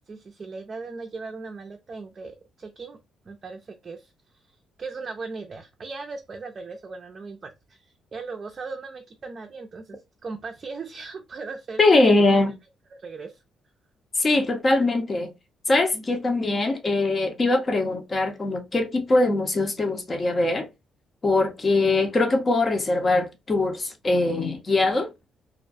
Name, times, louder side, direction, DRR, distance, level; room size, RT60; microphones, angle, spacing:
voice 1, 0.0-3.0 3.3-4.1 4.8-11.8 12.9-13.4 15.9-16.0, right 4 dB, 40° right, 0.4 m, -38 dB
voice 2, 11.8-12.6 14.2-15.3 15.7-20.7 21.2-25.1, left 2 dB, 35° left, 0.7 m, -22 dB
2.4 x 2.2 x 2.5 m
cardioid pair, 90°, 0 cm